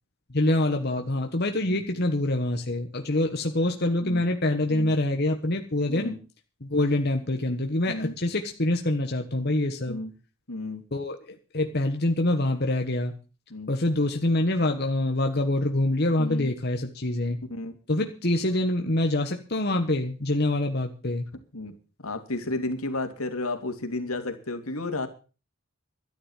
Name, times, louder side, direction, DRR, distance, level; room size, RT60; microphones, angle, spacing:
voice 1, 0.3-6.1 6.6-10.0 10.9-13.1 13.7-17.4 17.9-21.2, left 1 dB, 50° left, 4 dB, 1.4 m, -25 dB
voice 2, 5.9-6.2 7.9-8.1 9.9-10.1 10.5-10.8 13.5-13.7 16.2-16.5 17.5-17.7 21.5-21.7 22.0-25.1, left 2 dB, 85° left, 6 dB, 2.8 m, -32 dB
12.5 x 10.5 x 7.3 m, 0.36 s
head